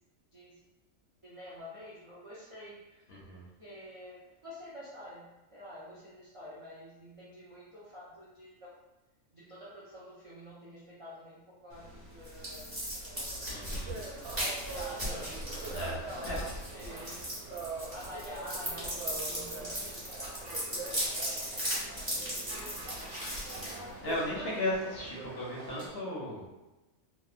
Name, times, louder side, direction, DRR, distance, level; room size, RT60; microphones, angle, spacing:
voice 1, 1.2-3.0 3.6-8.7 9.3-17.2 17.9-21.1 21.5-23.3, equal, 45° right, -9 dB, 0.4 m, -49 dB
voice 2, 3.1-3.4 13.5-14.0 15.7-16.4 23.6-26.5, left 1 dB, 60° left, -5 dB, 0.8 m, -36 dB
sound 1, 11.7-24.4, equal, 20° right, 0.9 m, -38 dB
sound 2, 13.3-25.9, right 3 dB, 70° right, 1.0 m, -44 dB
2.9 x 2.0 x 2.4 m, 1.1 s
omnidirectional pair, 1.4 m